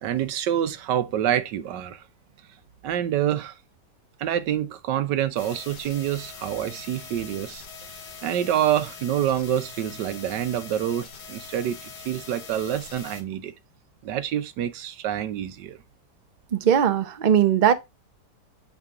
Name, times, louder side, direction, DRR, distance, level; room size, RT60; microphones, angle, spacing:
voice 1, 0.0-2.0 2.8-3.6 4.2-7.6 8.2-13.5 14.0-15.8, right 10 dB, 85° right, 1.4 m, -27 dB
sound 1, 5.4-13.2, left 5 dB, 85° left, 1.9 m, -42 dB
voice 2, 16.5-17.7, right 9 dB, 65° right, 0.4 m, -19 dB
7.2 x 4.9 x 3.6 m
omnidirectional pair, 1.8 m